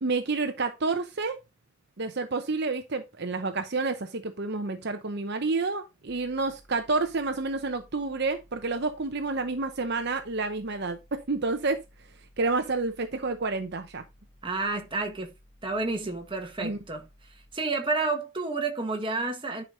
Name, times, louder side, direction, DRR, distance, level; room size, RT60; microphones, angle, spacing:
voice 1, 0.0-1.4 2.0-11.8 12.4-14.0 16.6-16.8, right 3 dB, 50° right, 0.8 m, -29 dB
sound 1, 6.1-17.5, equal, 20° left, 2.1 m, -58 dB
voice 2, 14.4-15.3 15.6-17.1 17.5-19.6, right 3 dB, 25° right, 1.6 m, -30 dB
10.5 x 5.2 x 3.9 m
head